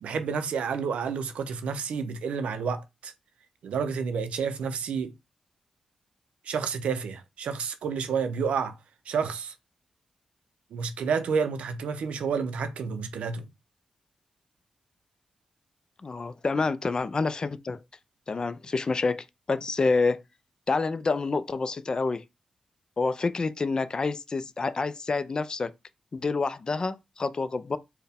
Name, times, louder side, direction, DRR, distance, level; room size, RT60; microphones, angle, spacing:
voice 1, 0.0-3.1 3.6-5.1 6.4-8.8 9.1-9.5 10.7-13.5, right 6 dB, 85° right, 0.5 m, -30 dB
voice 2, 16.0-17.8 18.3-20.2 20.7-22.2 23.0-25.7 26.1-27.8, left 4 dB, 40° left, 0.4 m, -28 dB
4.3 x 2.1 x 3.4 m
cardioid pair, 70°, 2 cm